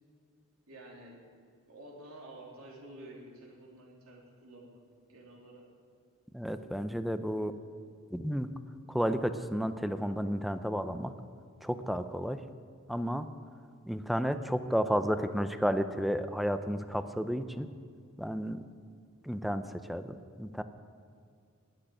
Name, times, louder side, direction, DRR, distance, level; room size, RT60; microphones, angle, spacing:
voice 1, 0.7-1.2 1.7-4.8 5.1-5.6, right 1 dB, 80° right, -2 dB, 3.4 m, -50 dB
voice 2, 6.3-7.5 8.1-8.5 8.9-11.1 11.6-12.4 12.9-13.3 13.9-17.7 18.2-18.6 19.2-20.0 20.4-20.6, equal, ahead, 10 dB, 0.6 m, -32 dB
18.0 x 6.7 x 9.9 m, 2.2 s
head